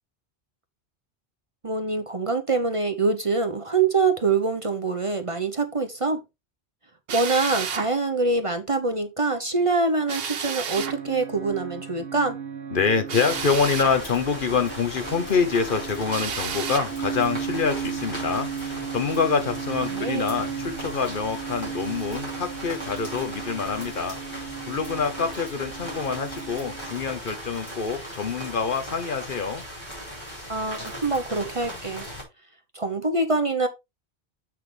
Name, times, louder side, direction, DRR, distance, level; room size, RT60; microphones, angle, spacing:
voice 1, 1.6-6.2 7.1-12.4 19.9-20.2 30.5-32.1 32.7-33.7, right 3 dB, 35° right, 0.8 m, -25 dB
Drill, 7.1-7.9 10.1-11.0 13.1-14.0 16.1-16.9, right 7 dB, 65° right, 1.0 m, -31 dB
sound 1, 10.8-27.0, right 7 dB, 85° right, 1.4 m, -36 dB
voice 2, 12.7-29.6, left 5 dB, 55° left, 0.9 m, -26 dB
sound 2, 13.3-32.2, equal, 25° left, 5.1 m, -38 dB
7.6 x 6.0 x 3.3 m
omnidirectional pair, 1.1 m